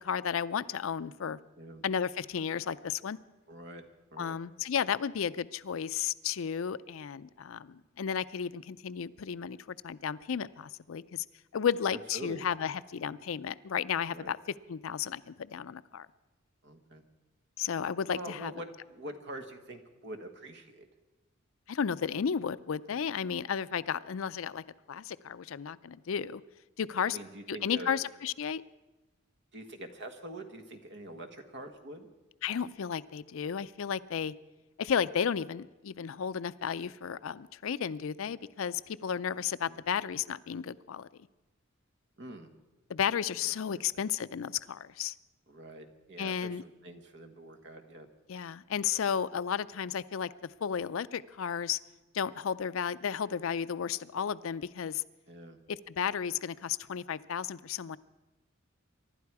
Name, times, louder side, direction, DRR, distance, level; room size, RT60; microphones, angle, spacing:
voice 1, 0.0-1.4 1.8-3.2 4.2-11.2 11.5-14.4 14.7-16.1 17.6-18.5 21.7-26.4 26.8-27.2 27.5-28.6 32.4-34.3 34.8-41.1 42.9-45.1 46.2-46.6 48.3-51.8 52.1-55.0 55.7-58.0, left 7 dB, 70° left, 16 dB, 0.4 m, -33 dB
voice 2, 3.5-3.8 4.1-4.4 11.9-12.5 14.1-14.3 16.6-17.0 18.1-20.9 27.0-28.0 29.5-32.1 39.6-39.8 42.2-42.5 43.4-44.0 45.5-48.1 55.3-55.6, right 1 dB, 55° right, 6 dB, 1.5 m, -45 dB
24.5 x 11.5 x 4.8 m, 1.1 s
head